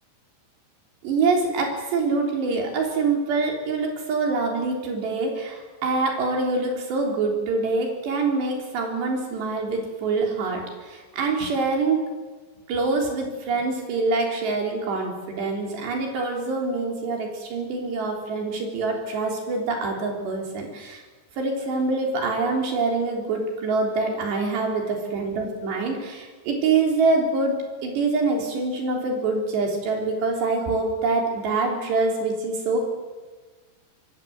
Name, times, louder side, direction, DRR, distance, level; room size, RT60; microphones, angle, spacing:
voice 1, 1.0-12.0 12.7-21.0 21.4-27.5 27.8-32.9, right 3 dB, 70° right, 1 dB, 5.8 m, -25 dB
24.5 x 24.0 x 7.8 m, 1.3 s
omnidirectional pair, 5.1 m